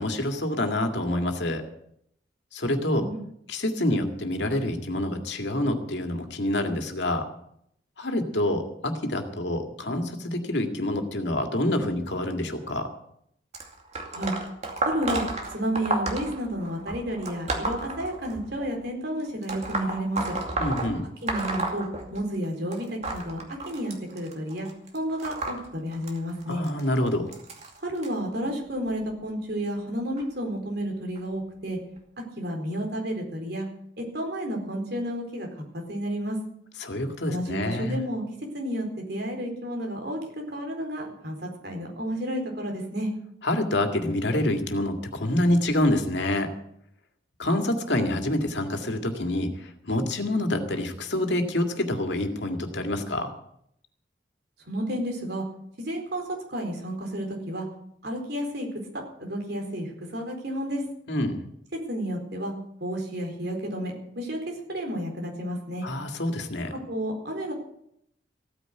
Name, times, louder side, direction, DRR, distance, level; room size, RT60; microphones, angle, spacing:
voice 1, 0.0-1.6 2.5-3.1 3.5-7.3 8.0-12.9 20.6-21.1 26.5-27.3 36.8-38.0 43.4-46.5 47.4-53.3 61.1-61.4 65.8-66.7, left 1 dB, 75° left, 5 dB, 2.1 m, -27 dB
sound 1, 13.5-18.7 19.4-22.4 22.7-28.1 28.9-29.1 30.2-30.3 31.2-31.3 32.0-32.1, right 2 dB, 40° right, 2.5 m, -32 dB
voice 2, 14.8-15.2 15.5-20.4 21.2-24.7 24.9-26.6 27.8-31.8 32.4-33.7 34.0-35.5 35.7-36.4 37.3-38.2 38.5-43.1 54.7-55.4 55.8-56.2 56.5-57.7 58.0-58.7 59.2-60.8 61.9-62.5 62.8-65.9 66.9-67.5, equal, 60° right, 1 dB, 4.3 m, -31 dB
15.5 x 9.7 x 7.9 m, 0.72 s
head